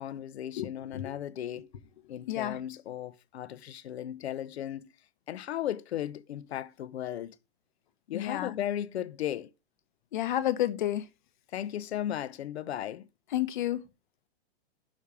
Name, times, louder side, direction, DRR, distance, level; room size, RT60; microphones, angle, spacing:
voice 1, 0.0-1.7 2.1-4.8 5.3-7.4 8.1-9.5 11.5-13.1, left 11 dB, 90° left, 0.9 m, -36 dB
voice 2, 8.1-8.5 10.1-11.0 13.3-13.8, left 13 dB, 50° left, 1.0 m, -30 dB
6.4 x 5.0 x 6.9 m
supercardioid pair, 180°, 31 cm